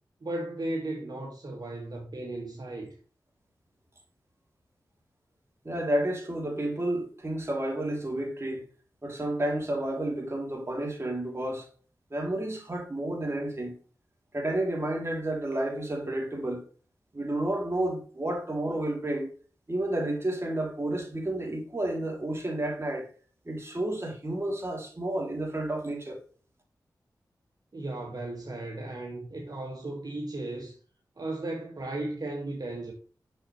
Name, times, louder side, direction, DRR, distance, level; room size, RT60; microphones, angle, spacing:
voice 1, 0.2-2.9 27.7-30.8 31.2-32.9, right 2 dB, 55° right, 1.7 m, -35 dB
voice 2, 5.6-8.6 9.0-11.7 12.1-13.7 14.3-16.6 17.1-19.3 19.7-23.1 23.4-26.2, right 1 dB, 35° right, 2.8 m, -31 dB
6.6 x 6.3 x 3.1 m
cardioid pair, 45°, 8 cm